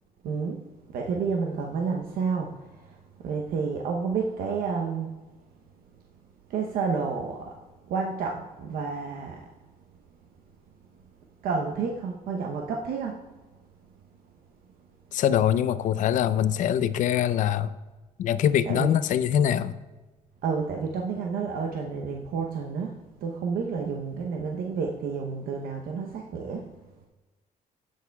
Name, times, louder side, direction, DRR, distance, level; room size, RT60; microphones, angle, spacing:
voice 1, 0.2-0.6 0.9-2.6 3.2-5.1 6.5-7.6 7.9-9.4 11.4-13.2 18.6-19.0 20.4-26.7, right 5 dB, 85° right, 1 dB, 0.7 m, -30 dB
voice 2, 15.1-17.7 18.2-19.8, left 9 dB, 60° left, 14 dB, 0.4 m, -23 dB
15.5 x 6.4 x 2.2 m, 1.2 s
cardioid pair, 145°, 15 cm